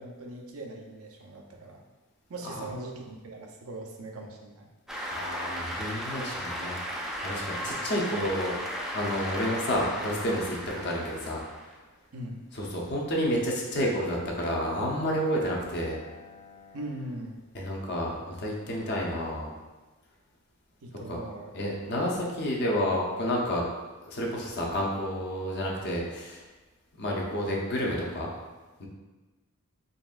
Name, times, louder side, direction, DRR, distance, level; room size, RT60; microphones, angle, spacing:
voice 1, 0.0-1.8 2.3-4.7 7.6-7.9 12.1-12.4 16.7-17.4 20.8-21.5, right 1 dB, 70° right, 1 dB, 0.6 m, -40 dB
Cheering / Applause, 4.9-11.7, equal, ahead, 0.4 m, -35 dB
voice 2, 5.1-8.6 8.9-11.4 12.5-16.0 17.5-19.5 21.1-21.2 21.5-23.6 24.0-26.4 27.0-28.3 28.8-28.9, equal, 50° left, -2 dB, 0.7 m, -30 dB
Bowed string instrument, 14.0-18.4, left 4 dB, 85° left, 1.2 m, -51 dB
4.0 x 3.6 x 2.4 m, 1.2 s
head